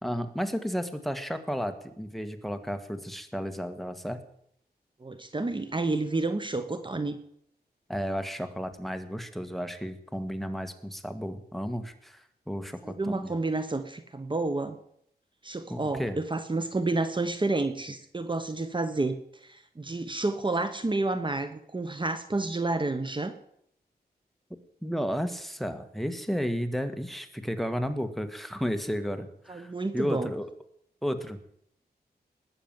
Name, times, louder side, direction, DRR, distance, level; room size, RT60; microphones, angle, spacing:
voice 1, 0.0-4.2 7.9-13.3 15.7-16.2 24.8-30.5 31.0-31.4, equal, ahead, 9 dB, 1.7 m, -33 dB
voice 2, 5.0-7.2 12.8-14.8 15.4-23.3 29.5-30.3, right 2 dB, 30° right, 9 dB, 1.3 m, -30 dB
20.0 x 7.1 x 9.0 m, 0.71 s
wide cardioid pair, 85°, 17 cm